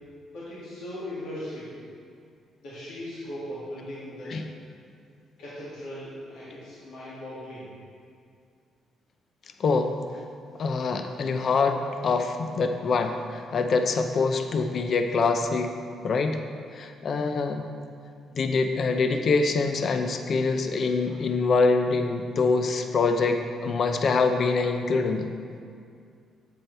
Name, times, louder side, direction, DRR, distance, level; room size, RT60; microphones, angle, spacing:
voice 1, 0.3-1.8 2.6-4.4 5.4-7.7 21.1-21.2, left 1 dB, 85° left, -9 dB, 2.2 m, -38 dB
voice 2, 9.6-10.0 10.6-15.8 16.0-16.4 16.7-17.6 18.3-25.3, left 4 dB, 55° left, 6 dB, 0.5 m, -25 dB
8.6 x 7.9 x 3.3 m, 2.3 s
cardioid pair, 90°, 0 cm